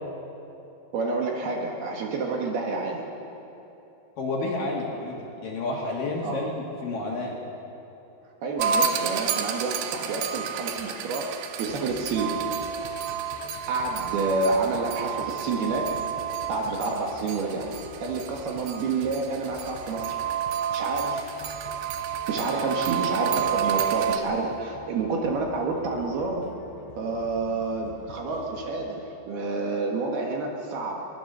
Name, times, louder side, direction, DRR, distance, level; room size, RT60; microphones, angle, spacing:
voice 1, 0.9-3.1 6.2-6.4 8.4-12.4 13.7-15.9 16.5-17.7 18.0-20.2 20.7-21.2 22.3-26.5 27.0-31.0, right 3 dB, 60° right, 0 dB, 3.2 m, -29 dB
voice 2, 4.2-7.4, left 2 dB, 55° left, -2 dB, 3.1 m, -30 dB
sound 1, 8.6-24.2, right 7 dB, 80° right, 3.3 m, -30 dB
sound 2, 11.7-28.7, left 5 dB, 85° left, 3.4 m, -47 dB
22.0 x 20.0 x 6.8 m, 3.0 s
omnidirectional pair, 5.6 m